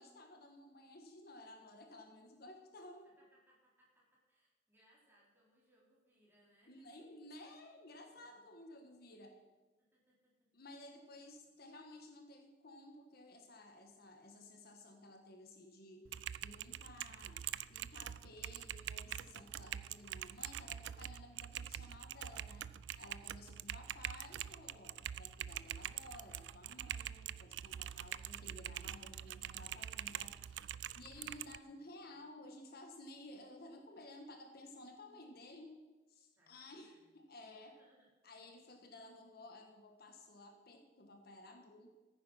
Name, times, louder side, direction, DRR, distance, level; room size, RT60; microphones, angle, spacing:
voice 1, 0.0-3.1 6.7-9.4 10.5-17.4 17.7-22.7 23.0-35.8 36.1-37.8 38.2-41.9, left 1 dB, 55° left, 4 dB, 1.4 m, -55 dB
voice 2, 3.0-6.9 9.8-10.5 31.6-32.4 36.3-37.1 37.6-38.1, right 1 dB, 10° right, -5 dB, 4.6 m, -73 dB
Typing, 16.0-31.6, right 10 dB, 65° right, 0.4 m, -45 dB
15.0 x 9.5 x 5.9 m, 1.2 s
head